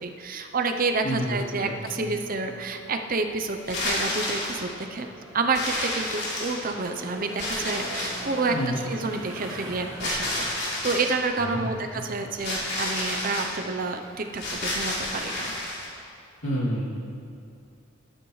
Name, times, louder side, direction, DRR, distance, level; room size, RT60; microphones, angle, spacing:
voice 1, 0.0-5.1 5.3-8.6 8.9-10.3 10.6-15.5, right 3 dB, 40° right, 6 dB, 0.7 m, -29 dB
sound 1, 0.7-15.6, right 1 dB, 20° right, 2.0 m, -44 dB
voice 2, 1.0-1.7 2.0-2.1 8.5-8.7 11.4-11.7 11.9-12.0 16.4-16.9, equal, 75° left, -5 dB, 2.7 m, -29 dB
sound 2, 3.6-4.6 5.5-6.8 7.4-8.3 10.0-11.1 12.4-13.5 14.3-15.9, left 1 dB, 55° left, 3.3 m, -30 dB
20.0 x 9.8 x 3.2 m, 2.5 s
head